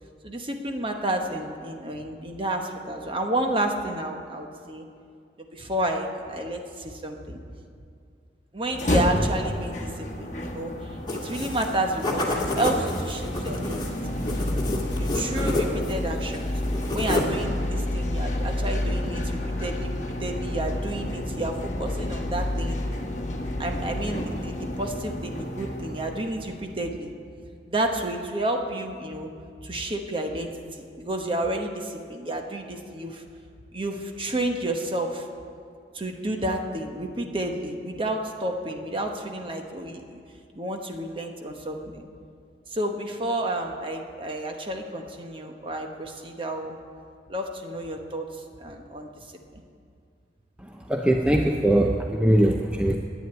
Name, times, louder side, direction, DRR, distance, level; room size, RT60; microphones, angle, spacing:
voice 1, 0.2-4.9 5.5-7.4 8.5-13.8 14.9-16.5 16.9-22.8 23.6-27.1 27.7-29.3 29.6-33.2 33.7-35.3 35.9-40.2 40.5-42.1 42.7-46.8 47.3-49.2 49.5-49.6, right 1 dB, 30° right, 3 dB, 1.1 m, -31 dB
sound 1, 8.6-26.8, left 1 dB, 40° left, 1.2 m, -30 dB
sound 2, 11.1-11.7 12.0-16.0 16.3-17.4, left 2 dB, 25° left, 1.9 m, -29 dB
voice 2, 50.9-53.0, right 1 dB, 5° right, 2 dB, 0.5 m, -21 dB
11.0 x 9.5 x 9.0 m, 2.4 s
head